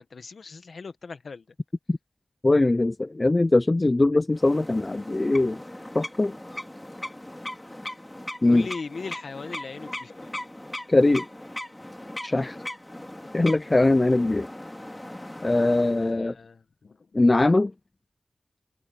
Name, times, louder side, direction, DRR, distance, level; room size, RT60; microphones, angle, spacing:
voice 1, 0.0-1.4 8.5-10.3 13.0-13.1 16.0-17.1, left 4 dB, 75° left, 1.4 m, -39 dB
voice 2, 2.4-5.6 5.9-6.3 8.4-8.7 10.9-11.3 12.2-12.6 13.3-14.5 15.4-16.3 17.1-17.7, left 2 dB, 30° left, 0.4 m, -21 dB
sound 1, 4.3-16.2, left 1 dB, 15° left, 3.2 m, -39 dB
wide cardioid pair, 75°, 0 cm